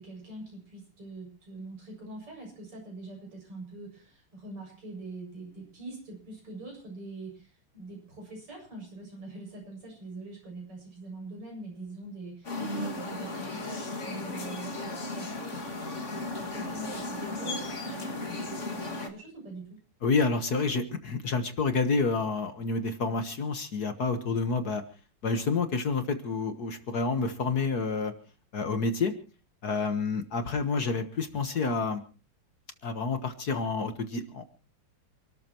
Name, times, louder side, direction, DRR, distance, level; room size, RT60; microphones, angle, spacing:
voice 1, 0.0-15.6 15.9-19.8, right 2 dB, 85° right, 1 dB, 8.3 m, -44 dB
sound 1, 12.4-19.1, left 2 dB, 35° left, 2.3 m, -35 dB
voice 2, 20.0-24.8 25.2-28.1 28.5-29.1 29.6-32.0 32.8-34.5, left 4 dB, 50° left, 8 dB, 1.7 m, -29 dB
28.0 x 13.0 x 3.0 m, 0.34 s
omnidirectional pair, 2.4 m